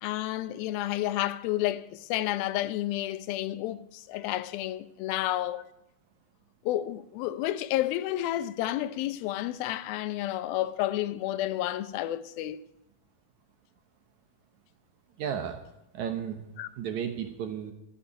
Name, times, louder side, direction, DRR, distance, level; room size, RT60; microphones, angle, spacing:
voice 1, 0.0-5.6 6.7-12.6 16.6-16.7, left 14 dB, 90° left, 2.5 m, -30 dB
voice 2, 15.2-15.6 15.9-16.4 16.8-17.7, right 8 dB, 65° right, 2.1 m, -33 dB
13.0 x 8.4 x 10.0 m
omnidirectional pair, 4.1 m